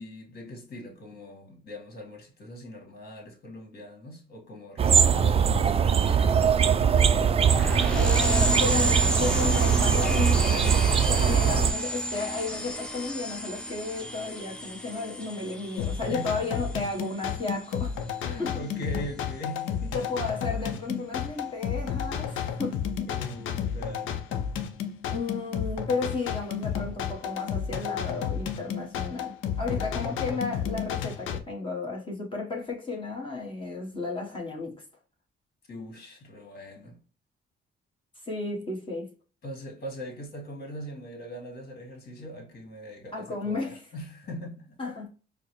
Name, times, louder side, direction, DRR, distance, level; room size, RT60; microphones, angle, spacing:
voice 1, 0.0-6.6 11.0-11.5 16.1-16.5 18.2-20.1 20.6-20.7 23.1-24.2 29.7-30.2 35.7-37.0 39.4-44.8, equal, 50° left, 1.6 m, -41 dB
sound 1, 4.8-11.7, right 7 dB, 30° right, 0.3 m, -22 dB
sound 2, 7.5-17.6, equal, 5° left, 0.7 m, -32 dB
voice 2, 7.9-10.7 11.0-18.0 18.4-18.6 19.9-23.1 23.4-23.5 25.0-34.8 38.2-39.1 43.1-43.8 44.8-45.1, left 3 dB, 25° left, 1.1 m, -33 dB
sound 3, 15.8-31.4, left 8 dB, 85° left, 0.5 m, -32 dB
4.5 x 2.0 x 3.0 m
cardioid pair, 90°, 20 cm